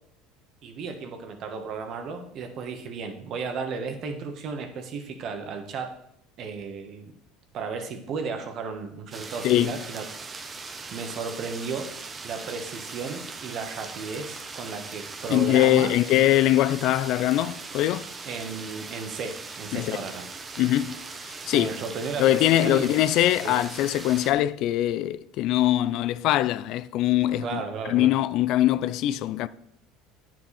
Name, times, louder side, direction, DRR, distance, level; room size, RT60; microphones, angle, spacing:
voice 1, 0.6-5.9 6.4-7.1 7.5-10.0 10.9-11.9 12.2-15.9 18.2-20.3 21.5-22.9 23.4-23.6 27.4-28.1, right 5 dB, 50° right, 1.5 m, -34 dB
sound 1, 9.1-24.3, right 4 dB, 25° right, 1.0 m, -40 dB
voice 2, 15.3-18.1 19.7-20.0 20.6-21.0 21.3-21.8 22.2-29.5, left 14 dB, 60° left, 0.4 m, -22 dB
9.3 x 7.6 x 4.3 m
supercardioid pair, 115°, 0 cm